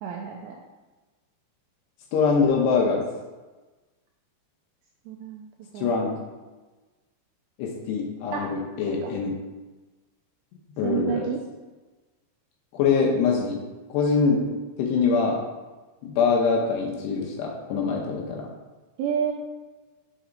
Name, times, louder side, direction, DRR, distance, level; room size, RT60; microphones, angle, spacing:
voice 1, 0.0-0.6 5.1-5.5 5.7-6.2 8.3-8.5 8.9-9.1 10.8-11.4 19.0-19.3, right 8 dB, 85° right, 1 dB, 2.4 m, -30 dB
voice 2, 2.1-3.0 5.8-6.2 7.6-9.3 10.8-11.2 12.7-13.6 13.9-14.4 14.8-15.4 16.0-18.5, left 5 dB, 75° left, -1 dB, 2.7 m, -23 dB
7.0 x 4.2 x 5.0 m, 1.2 s
omnidirectional pair, 5.4 m